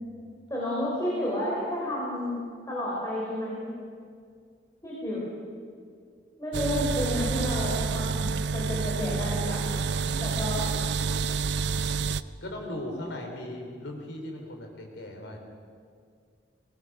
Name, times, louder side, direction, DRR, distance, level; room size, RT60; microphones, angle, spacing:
voice 1, 0.5-2.4 2.7-3.7 4.8-5.2 6.4-9.6 10.2-10.7, left 1 dB, 20° left, -6 dB, 4.8 m, -31 dB
sound 1, 6.5-12.2, right 5 dB, 65° right, 0.5 m, -28 dB
voice 2, 12.4-15.4, left 1 dB, 70° left, 1 dB, 4.1 m, -38 dB
21.5 x 20.0 x 6.5 m, 2.2 s
head